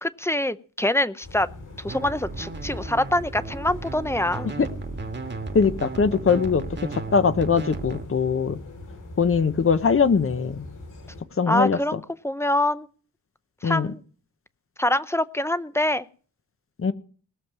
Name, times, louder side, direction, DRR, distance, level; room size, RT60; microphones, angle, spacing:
voice 1, 0.0-1.5 1.8-4.5 11.5-12.9 13.6-14.0 14.8-16.1, left 1 dB, 10° left, 14 dB, 0.6 m, -25 dB
sound 1, 1.2-11.2, left 2 dB, 75° left, 5.9 m, -41 dB
sound 2, 1.9-8.1, right 3 dB, 35° right, 1.6 m, -35 dB
voice 2, 5.5-6.6 6.9-8.6 9.2-10.7 11.4-12.0 13.6-13.9 16.8-16.9, left 5 dB, 45° left, 11 dB, 1.0 m, -21 dB
20.0 x 7.3 x 6.0 m, 0.42 s
wide cardioid pair, 145°, 31 cm